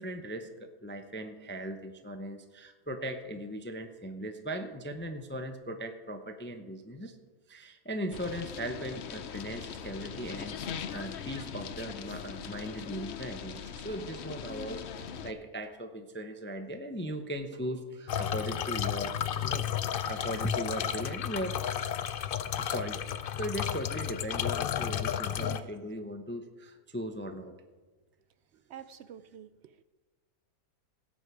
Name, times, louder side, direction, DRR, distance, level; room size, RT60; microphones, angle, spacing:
voice 1, 0.0-7.1 7.5-19.7 20.1-21.6 22.6-27.5, equal, 20° left, 6 dB, 0.3 m, -38 dB
sound 1, 8.1-15.3, left 7 dB, 55° left, 0.8 m, -41 dB
sound 2, 18.1-25.6, left 9 dB, 90° left, 0.4 m, -32 dB
voice 2, 25.4-25.7 28.7-29.8, right 9 dB, 70° right, 12 dB, 0.6 m, -47 dB
17.0 x 8.2 x 4.9 m, 1.3 s
omnidirectional pair, 1.6 m